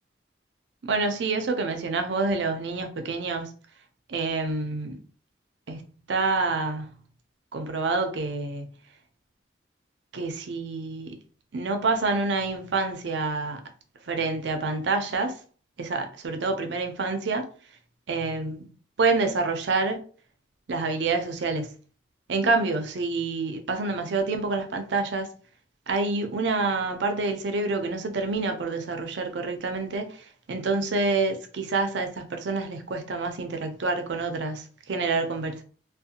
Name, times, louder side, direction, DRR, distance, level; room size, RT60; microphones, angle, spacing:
voice 1, 0.8-3.5 4.1-5.0 5.7-7.0 7.5-8.6 10.1-11.2 11.5-13.6 14.1-15.4 15.8-17.5 18.1-18.7 19.0-20.0 20.7-21.8 22.3-25.3 25.9-35.6, right 3 dB, 70° right, 0.5 m, -27 dB
2.5 x 2.1 x 2.7 m
head